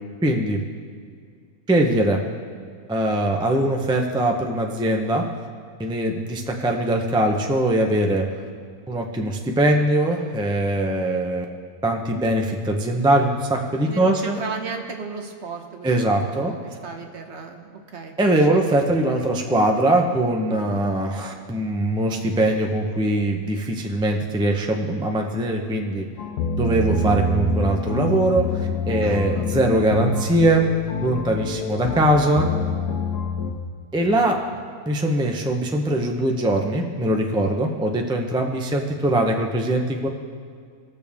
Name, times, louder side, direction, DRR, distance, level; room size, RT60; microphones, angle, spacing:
voice 1, 0.2-0.6 1.7-2.2 2.9-5.2 5.8-8.3 8.9-11.4 11.8-14.4 15.8-16.5 18.2-26.1 26.6-30.7 31.0-32.5 33.9-34.4 34.9-40.1, right 1 dB, 5° right, 2 dB, 0.4 m, -21 dB
voice 2, 13.8-19.2 20.5-20.8 29.0-29.5, right 4 dB, 50° right, 3 dB, 1.1 m, -35 dB
sound 1, 26.2-33.5, left 2 dB, 80° left, 1.3 m, -26 dB
20.0 x 6.9 x 3.5 m, 2.1 s
omnidirectional pair, 1.7 m